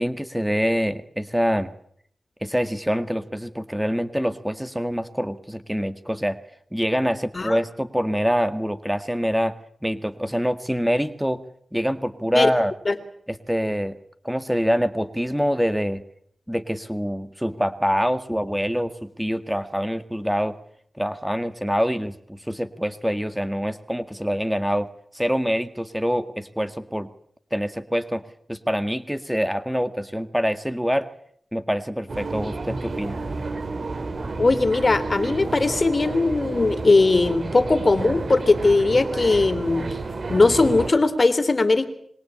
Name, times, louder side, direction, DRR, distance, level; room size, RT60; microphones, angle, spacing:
voice 1, 0.0-1.7 2.4-6.4 6.7-9.5 9.8-11.4 11.7-12.7 13.3-14.0 14.2-16.0 16.5-20.6 21.0-24.9 25.1-27.1 27.5-28.2 28.5-31.1 31.5-33.2, equal, 5° right, 11 dB, 1.8 m, -25 dB
sound 1, 32.1-40.9, right 3 dB, 60° right, 3.0 m, -30 dB
voice 2, 34.4-39.8 40.3-41.9, left 3 dB, 45° left, 12 dB, 3.1 m, -19 dB
26.0 x 23.0 x 8.8 m, 0.66 s
cardioid pair, 60°, 0 cm